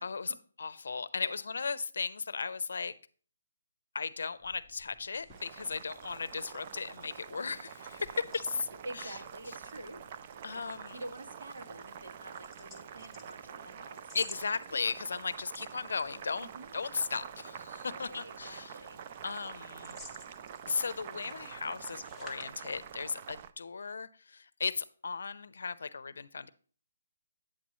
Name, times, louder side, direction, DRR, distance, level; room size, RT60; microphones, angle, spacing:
voice 1, 0.0-2.9 3.9-8.7 9.0-9.1 10.4-11.0 14.1-16.5 16.7-18.7 19.2-20.0 20.7-26.5, left 5 dB, 70° left, 16 dB, 0.6 m, -36 dB
sound 1, 4.3-23.2, left 2 dB, ahead, 0.8 m, -56 dB
Boiling, 5.3-23.5, right 8 dB, 30° right, 0.4 m, -47 dB
voice 2, 8.1-10.0 10.9-14.2 16.4-16.7 17.8-19.0, right 1 dB, 70° right, 2 dB, 1.9 m, -47 dB
8.6 x 7.3 x 3.0 m, 0.42 s
hypercardioid pair, 170°, 0 cm